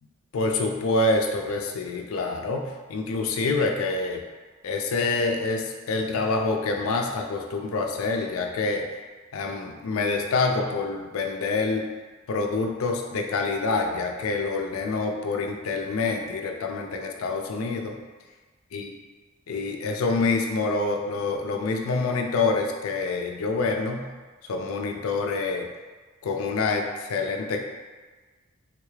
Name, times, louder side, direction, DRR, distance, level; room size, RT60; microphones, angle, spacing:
voice 1, 0.3-4.2 4.6-9.0 9.3-11.9 12.3-18.0 18.7-18.9 19.5-24.1 24.5-25.7 26.2-27.6, left 3 dB, 70° left, 3 dB, 0.4 m, -26 dB
3.5 x 3.2 x 2.3 m, 1.4 s
head